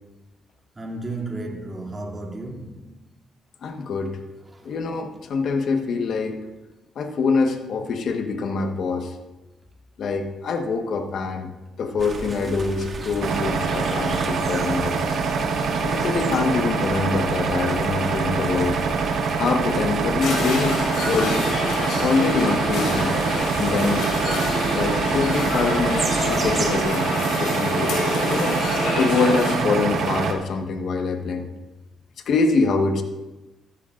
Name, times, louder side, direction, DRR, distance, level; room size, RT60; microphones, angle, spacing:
voice 1, 0.8-2.9, right 2 dB, 25° right, 2.7 m, -33 dB
voice 2, 3.6-4.1 4.6-6.4 6.9-9.1 10.0-11.5 11.8-15.1 15.8-18.8 19.3-20.8 21.0-21.4 22.0-23.1 23.6-24.1 24.7-27.0 27.4-28.0 28.3-28.6 28.9-31.5 32.3-33.0, left 4 dB, 65° left, 1.3 m, -24 dB
sound 1, 12.0-26.8, right 4 dB, 40° right, 2.0 m, -34 dB
sound 2, 13.2-30.3, right 5 dB, 70° right, 1.3 m, -25 dB
sound 3, 20.2-29.6, left 3 dB, 85° left, 4.4 m, -28 dB
14.5 x 13.0 x 2.6 m
cardioid pair, 90°, 0 cm